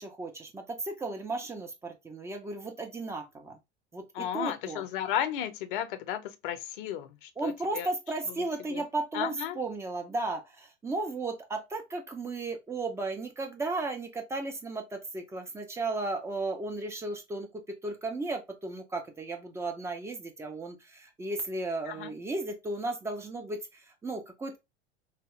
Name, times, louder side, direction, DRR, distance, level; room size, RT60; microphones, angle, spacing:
voice 1, 0.0-3.6 3.9-4.8 7.4-24.6, right 2 dB, 10° right, 0.4 m, -35 dB
voice 2, 4.1-7.9 8.3-8.8 9.1-9.6 21.9-22.1, left 10 dB, 50° left, 0.5 m, -34 dB
2.8 x 2.3 x 2.9 m
figure-of-eight pair, 85°, 33 cm